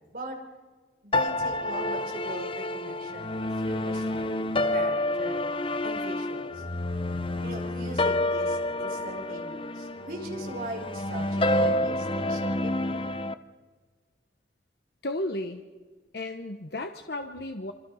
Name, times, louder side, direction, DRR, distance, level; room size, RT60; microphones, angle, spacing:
voice 1, 1.0-5.4 5.8-6.6 7.4-13.1, right 1 dB, 55° right, 1 dB, 5.3 m, -40 dB
sound 1, 1.1-13.3, left 1 dB, 30° left, 0.8 m, -29 dB
voice 2, 15.0-15.6 16.1-17.7, left 1 dB, 65° left, 6 dB, 1.1 m, -33 dB
27.0 x 25.0 x 5.7 m, 1.4 s
head